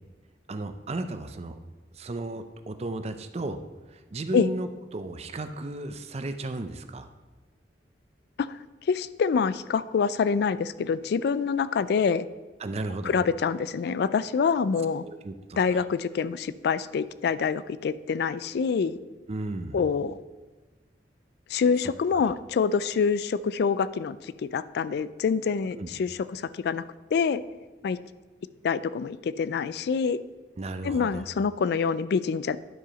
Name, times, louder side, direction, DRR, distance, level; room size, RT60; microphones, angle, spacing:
voice 1, 0.5-1.6 1.9-3.6 3.9-7.1 12.6-13.1 15.0-15.8 19.3-19.8 25.7-25.9 30.6-31.2, right 2 dB, 35° right, 9 dB, 0.5 m, -34 dB
voice 2, 8.9-12.3 13.0-15.0 15.6-19.0 19.7-20.2 21.5-26.8 27.1-27.4 27.8-28.0 28.6-30.2 30.8-32.6, left 5 dB, 65° left, 16 dB, 0.3 m, -26 dB
10.0 x 4.8 x 5.1 m, 1.3 s
head